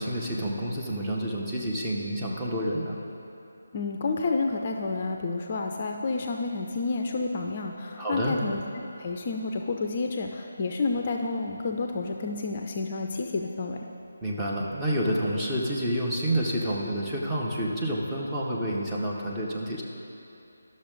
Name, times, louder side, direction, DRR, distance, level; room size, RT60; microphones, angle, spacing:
voice 1, 0.0-3.0 8.0-8.4 14.2-19.8, equal, 10° right, -6 dB, 1.0 m, -29 dB
voice 2, 3.7-8.6 9.0-13.9, left 3 dB, 35° left, 3 dB, 0.5 m, -30 dB
11.5 x 6.4 x 3.9 m, 2.9 s
figure-of-eight pair, 155°, 0 cm